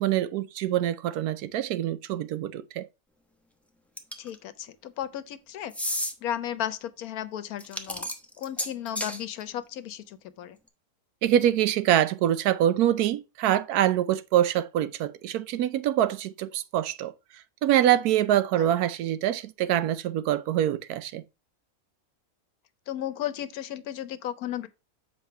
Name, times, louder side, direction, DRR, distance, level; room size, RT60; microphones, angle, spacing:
voice 1, 0.0-2.9 11.2-17.1 17.6-21.2, right 11 dB, 85° right, 1.1 m, -25 dB
sound 1, 4.0-4.4 5.7-6.1 7.6-9.2, left 1 dB, ahead, 0.6 m, -31 dB
voice 2, 4.2-5.7 6.2-8.1 8.4-10.6 18.6-18.7 22.9-24.7, left 11 dB, 75° left, 1.2 m, -34 dB
7.6 x 4.6 x 4.4 m
omnidirectional pair, 1.6 m